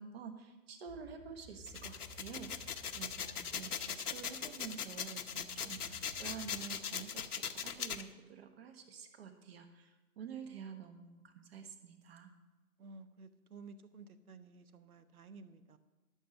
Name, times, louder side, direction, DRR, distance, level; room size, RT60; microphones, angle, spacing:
voice 1, 0.0-12.3, right 6 dB, 40° right, 7 dB, 1.4 m, -49 dB
sound 1, 0.9-6.6, equal, ahead, 0.9 m, -57 dB
sound 2, 1.7-8.0, left 7 dB, 75° left, 1.0 m, -40 dB
voice 2, 12.8-15.8, right 4 dB, 70° right, 12 dB, 1.1 m, -54 dB
13.0 x 6.6 x 6.2 m, 1.1 s
figure-of-eight pair, 140°, 46 cm